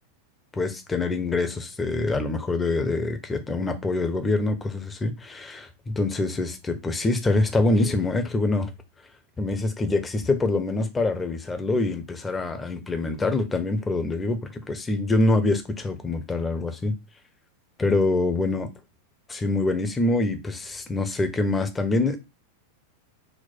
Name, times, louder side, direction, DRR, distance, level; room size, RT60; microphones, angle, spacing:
voice 1, 0.5-8.7 9.4-16.9 17.8-18.7 19.3-22.2, left 2 dB, 15° left, 0.7 m, -25 dB
4.3 x 2.1 x 4.3 m
figure-of-eight pair, 90°, 0 cm